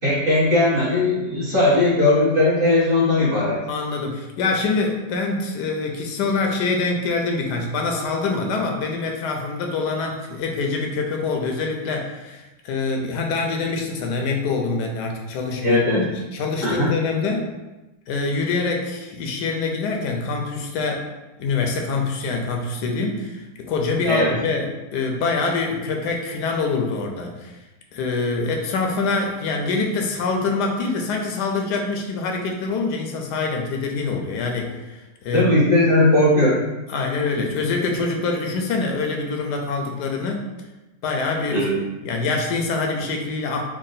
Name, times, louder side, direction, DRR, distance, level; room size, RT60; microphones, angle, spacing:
voice 1, 0.0-3.6 15.6-16.0 16.6-16.9 24.0-24.3 35.3-36.6 41.5-41.8, left 2 dB, 40° right, -8 dB, 1.0 m, -18 dB
voice 2, 3.7-17.5 18.1-21.1 21.4-27.5 27.9-35.5 36.9-40.5 41.0-41.7 42.0-43.6, left 3 dB, 80° left, 2 dB, 1.2 m, -25 dB
3.6 x 2.2 x 3.9 m, 1.1 s
omnidirectional pair, 1.8 m